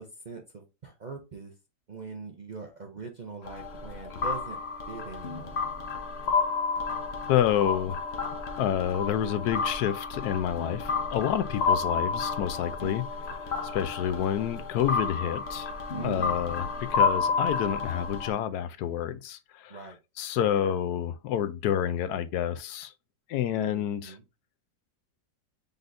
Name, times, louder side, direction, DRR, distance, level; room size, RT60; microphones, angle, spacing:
voice 1, 0.0-1.5 1.9-4.6 4.9-5.6 12.8-12.9 15.9-16.4 19.7-20.0 20.5-20.8 23.5-24.2, right 4 dB, 60° right, 0.4 m, -41 dB
sound 1, 3.4-18.3, left 5 dB, 45° left, 1.1 m, -31 dB
voice 2, 7.3-8.0 8.6-13.0 13.6-15.7 16.0-19.8 20.2-22.9 23.3-24.2, left 10 dB, 75° left, 1.1 m, -28 dB
5.3 x 3.9 x 2.5 m
omnidirectional pair, 1.7 m